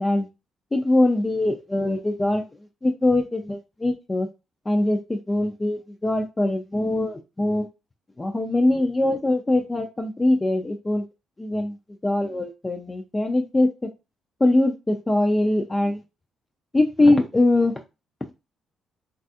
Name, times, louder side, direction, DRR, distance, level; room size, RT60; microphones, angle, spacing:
voice 1, 0.7-2.4 2.8-4.3 4.7-7.6 8.2-11.0 11.4-11.7 12.0-13.7 14.4-16.0 16.7-17.7, left 2 dB, 20° left, 0.3 m, -22 dB
3.3 x 2.3 x 2.6 m
cardioid pair, 90°, 0 cm